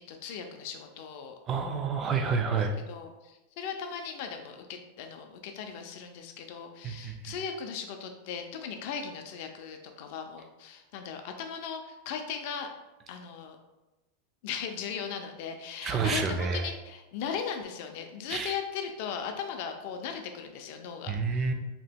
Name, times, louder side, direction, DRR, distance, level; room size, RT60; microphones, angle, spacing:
voice 1, 0.1-1.4 2.2-2.4 2.9-12.7 13.1-13.6 14.4-21.5, left 7 dB, 55° left, 5 dB, 0.4 m, -38 dB
voice 2, 1.5-2.7 6.8-7.1 15.8-16.7 18.3-18.6 21.1-21.5, right 5 dB, 25° right, 5 dB, 0.3 m, -29 dB
2.8 x 2.1 x 3.4 m, 1.0 s
supercardioid pair, 155°, 0 cm